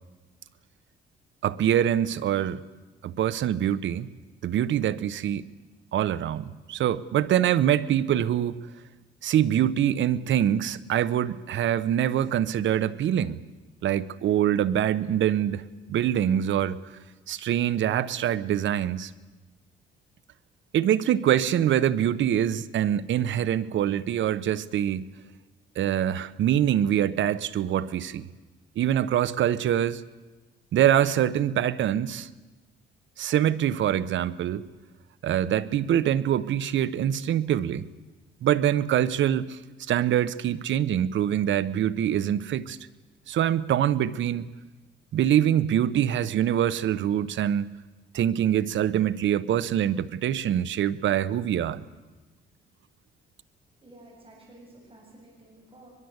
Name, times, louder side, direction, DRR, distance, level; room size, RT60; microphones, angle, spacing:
voice 1, 1.4-2.6 3.0-4.1 4.4-5.5 5.9-8.6 9.2-13.4 13.8-16.8 17.3-19.1 20.7-25.1 25.8-28.3 28.8-30.0 30.7-32.3 33.2-34.6 35.2-37.9 38.4-39.6 39.9-42.8 43.3-44.4 45.1-47.7 48.1-51.8, right 10 dB, 70° right, 1.0 m, -24 dB
voice 2, 53.7-55.9, right 1 dB, 30° right, 8.0 m, -52 dB
22.5 x 22.0 x 8.1 m
cardioid pair, 90°, 20 cm